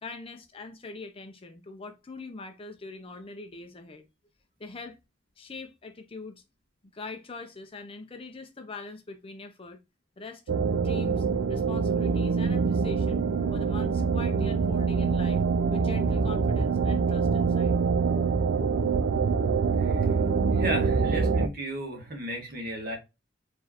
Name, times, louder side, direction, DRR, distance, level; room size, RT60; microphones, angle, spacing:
voice 1, 0.0-4.0 4.6-5.0 5.4-6.4 6.8-9.8 10.2-10.4 10.8-15.4 15.7-17.8, left 3 dB, 30° left, 0.5 m, -42 dB
sound 1, 10.5-21.5, right 5 dB, 70° right, 0.4 m, -25 dB
voice 2, 20.5-23.0, right 1 dB, 50° right, 1.4 m, -34 dB
4.4 x 3.1 x 2.9 m
head